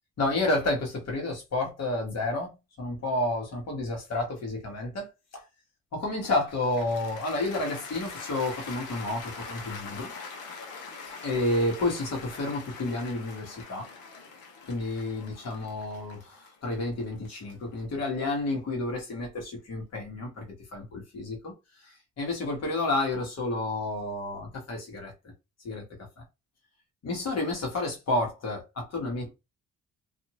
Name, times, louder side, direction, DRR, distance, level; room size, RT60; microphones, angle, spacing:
voice 1, 0.2-5.4 5.9-10.1 11.2-13.9 14.6-20.5 20.7-21.5 21.8-25.1 25.6-25.8 27.0-29.3, left 2 dB, 55° left, 1.4 m, -30 dB
Cheering / Applause, 6.5-18.7, left 4 dB, 80° left, 1.0 m, -43 dB
2.6 x 2.5 x 2.9 m
cardioid pair, 90°, 30 cm